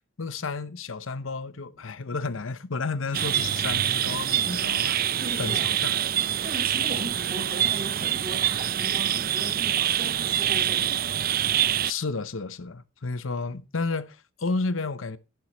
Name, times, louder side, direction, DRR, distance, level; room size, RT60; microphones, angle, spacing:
voice 1, 0.2-6.0 11.8-15.2, left 4 dB, 75° left, 0.8 m, -32 dB
sound 1, 3.1-11.9, right 11 dB, 50° right, 0.5 m, -25 dB
voice 2, 5.2-5.8 6.4-11.1, right 1 dB, 30° right, 4.5 m, -38 dB
11.0 x 10.5 x 3.1 m
head